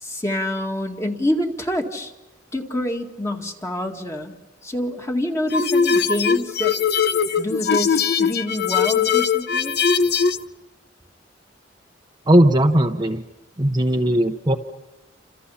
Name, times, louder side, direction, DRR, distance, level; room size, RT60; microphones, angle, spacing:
voice 1, 0.0-2.1 2.5-4.3 4.6-6.8 7.4-9.7, left 1 dB, 15° left, 3 dB, 2.0 m, -26 dB
sound 1, 5.5-10.4, left 6 dB, 55° left, 0.8 m, -20 dB
voice 2, 12.3-13.2 13.6-14.6, right 1 dB, 25° right, 4 dB, 0.9 m, -17 dB
28.5 x 27.0 x 5.7 m, 1.0 s
head